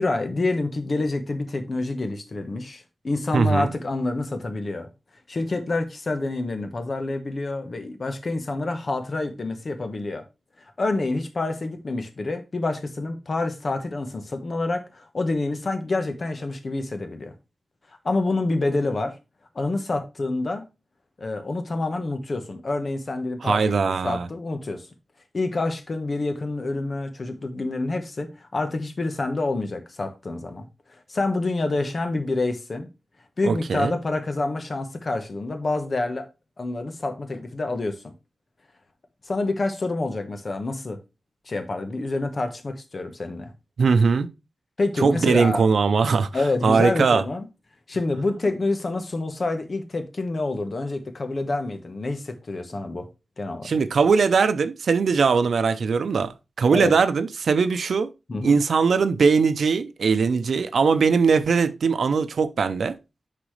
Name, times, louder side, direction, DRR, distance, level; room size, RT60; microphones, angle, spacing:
voice 1, 0.0-4.9 5.3-10.2 10.8-17.3 18.0-19.1 19.5-20.7 21.2-23.8 24.0-24.9 25.3-30.7 30.9-32.9 33.4-36.3 36.6-38.1 39.3-41.0 41.5-43.5 44.8-45.7 46.3-47.5 47.9-53.1 53.4-53.7 56.7-57.0 58.3-58.6, left 2 dB, 45° left, 1.2 m, -27 dB
voice 2, 3.3-3.7 23.4-24.3 33.5-34.0 43.8-44.3 45.0-46.3 46.6-47.2 53.6-56.3 56.6-58.1 58.4-62.9, right 5 dB, 90° right, 0.7 m, -20 dB
10.0 x 4.1 x 3.2 m
wide cardioid pair, 130°, 0 cm